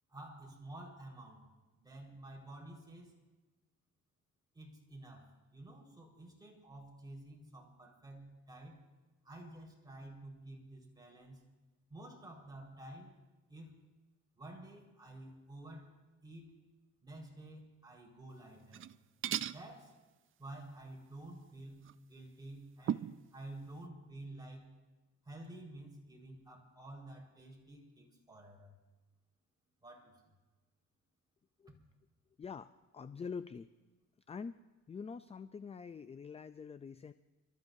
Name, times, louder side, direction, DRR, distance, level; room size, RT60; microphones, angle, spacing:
voice 1, 0.1-1.5 1.8-3.1 4.5-8.8 9.2-11.4 11.9-13.1 13.5-13.8 14.4-15.9 16.2-16.5 17.0-18.8 19.5-19.9 20.4-24.7 25.2-28.8 29.8-30.3, right 1 dB, 15° right, -2 dB, 4.5 m, -51 dB
sound 1, 18.6-19.0 19.2-19.6 21.8-21.9 22.9-23.2, right 11 dB, 45° right, 0.4 m, -36 dB
voice 2, 32.4-33.7 34.3-34.6 34.9-37.1, left 5 dB, 20° left, 12 dB, 0.4 m, -45 dB
29.0 x 13.5 x 2.7 m, 1.2 s
cardioid pair, 90°, 30 cm